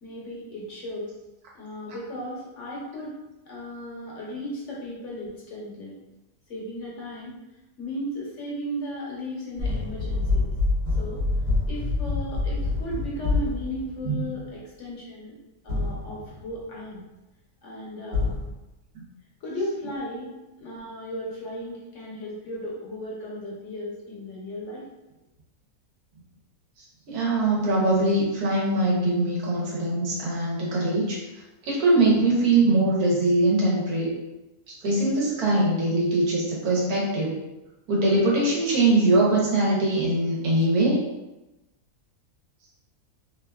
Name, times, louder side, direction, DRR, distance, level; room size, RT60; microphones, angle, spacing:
voice 1, 0.0-1.1 1.5-3.2 3.5-6.0 6.5-7.4 7.8-10.5 11.0-11.2 11.7-15.4 15.6-17.0 17.6-18.3 19.4-24.9, equal, 65° left, -5 dB, 0.9 m, -35 dB
sound 1, 9.6-14.2 15.7-16.6 18.1-18.5, left 3 dB, 55° right, 1.3 m, -26 dB
voice 2, 27.1-31.2 31.6-34.1 34.7-37.3 37.9-41.0, right 2 dB, 85° right, -4 dB, 1.3 m, -22 dB
2.8 x 2.4 x 2.2 m, 1.0 s
omnidirectional pair, 1.6 m